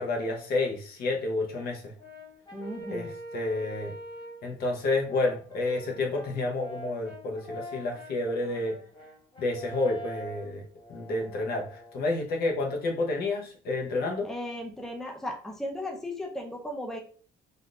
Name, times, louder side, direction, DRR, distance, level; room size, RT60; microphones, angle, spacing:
voice 1, 0.0-1.8 2.9-3.1 3.3-3.9 4.4-8.8 9.4-10.6 10.9-14.3, left 2 dB, 65° left, 1 dB, 0.9 m, -29 dB
Brass instrument, 2.0-4.5 5.1-12.0, equal, 25° left, 1.2 m, -44 dB
voice 2, 2.5-3.1 14.2-17.0, left 1 dB, 5° left, 1 dB, 0.5 m, -36 dB
3.5 x 2.5 x 2.3 m, 0.42 s
cardioid pair, 110°, 17 cm